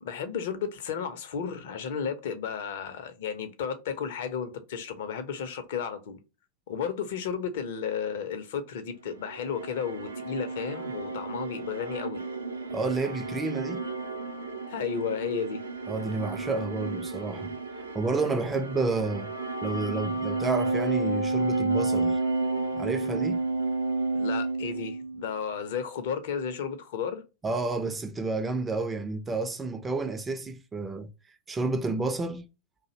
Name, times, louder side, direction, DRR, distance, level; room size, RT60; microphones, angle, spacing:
voice 1, 0.0-6.2 6.7-12.2 14.7-15.6 24.1-27.2, left 7 dB, 55° left, 0.5 m, -33 dB
sound 1, 9.1-25.4, right 3 dB, 75° right, 0.5 m, -31 dB
voice 2, 12.7-13.8 15.9-17.5 17.9-19.3 19.6-22.2 22.7-23.4 27.4-31.1 31.5-32.5, right 3 dB, 15° right, 0.3 m, -30 dB
2.5 x 2.0 x 2.6 m
figure-of-eight pair, 90°, 0 cm